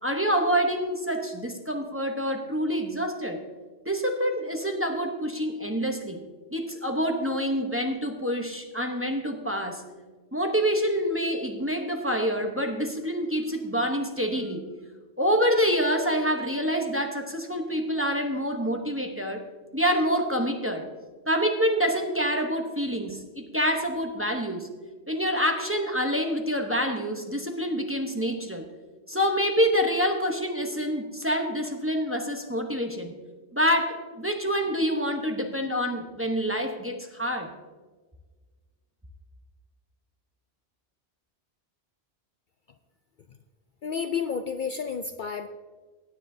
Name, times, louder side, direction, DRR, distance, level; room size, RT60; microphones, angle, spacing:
voice 1, 0.0-3.4 3.9-6.2 6.5-9.8 10.3-14.6 15.2-19.4 19.7-20.9 21.3-24.7 25.1-28.7 29.1-33.1 33.5-37.5, equal, 15° right, 3 dB, 0.8 m, -27 dB
voice 2, 43.8-45.5, left 6 dB, 60° left, 8 dB, 0.6 m, -30 dB
16.5 x 10.0 x 2.7 m, 1.4 s
omnidirectional pair, 1.1 m